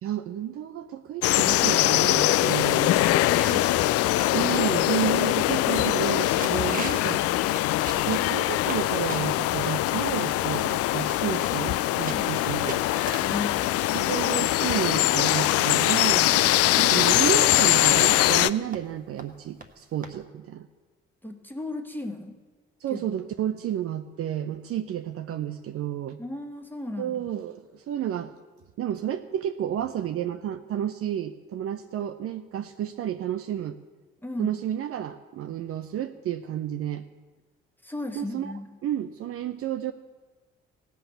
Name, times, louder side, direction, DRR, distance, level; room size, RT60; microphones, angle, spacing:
voice 1, 0.0-2.9 4.3-7.2 8.1-12.8 13.9-20.7 22.8-26.2 27.0-28.3 28.8-33.8 34.4-37.0 38.1-38.5 38.8-39.9, right 10 dB, 45° right, 9 dB, 0.6 m, -31 dB
sound 1, 1.2-18.5, left 15 dB, 50° left, 0.4 m, -22 dB
sound 2, 3.2-4.9 5.4-5.5 5.7-6.1 6.4-7.1 7.5-8.8 9.1-9.7 10.3-10.4 10.6-13.4 14.0-16.7 17.0-17.1 17.4-17.5 17.8-17.9 18.3-18.4 18.7-18.9 19.2-19.3 19.6-19.7 20.0-20.1, right 3 dB, 25° right, 1.3 m, -41 dB
voice 2, 13.2-13.8 21.2-22.4 22.9-23.1 26.2-27.3 34.2-34.5 37.8-38.7, left 2 dB, 5° left, 4 dB, 1.6 m, -36 dB
17.0 x 5.8 x 8.1 m, 1.3 s
figure-of-eight pair, 45°, 31 cm